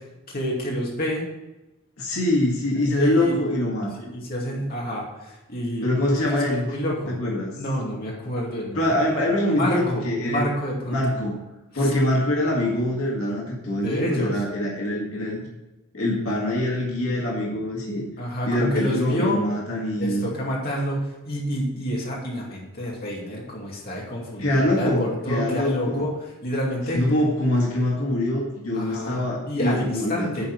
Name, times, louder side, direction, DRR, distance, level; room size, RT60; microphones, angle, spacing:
voice 1, 0.3-1.2 2.9-3.4 4.0-7.2 7.6-8.9 9.5-11.2 13.7-14.4 18.2-19.4 20.0-27.0 28.7-30.5, equal, 45° left, -3 dB, 2.4 m, -29 dB
voice 2, 2.0-3.9 5.8-6.7 7.1-7.6 8.8-10.5 10.9-11.4 11.7-15.4 15.9-18.0 18.5-20.3 24.4-26.1 26.9-30.5, left 1 dB, 85° left, -2 dB, 1.9 m, -24 dB
10.5 x 4.3 x 6.8 m, 1.0 s
head